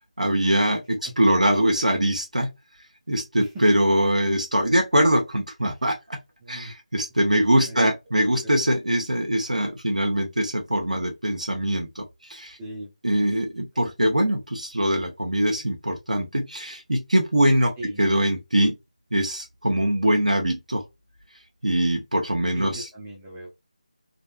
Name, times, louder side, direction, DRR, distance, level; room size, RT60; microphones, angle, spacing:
voice 1, 0.2-2.5 3.1-6.2 6.5-12.0 12.3-12.6 13.0-18.7 19.1-20.8 21.6-22.9, right 1 dB, 75° right, 1.3 m, -22 dB
voice 2, 6.4-6.7 7.6-7.9 8.4-8.5 12.6-12.9 13.3-13.4 13.7-13.9 15.6-15.7 17.8-18.0 22.5-23.6, right 1 dB, 10° right, 0.9 m, -38 dB
4.2 x 3.2 x 2.7 m
figure-of-eight pair, 160°, 4 cm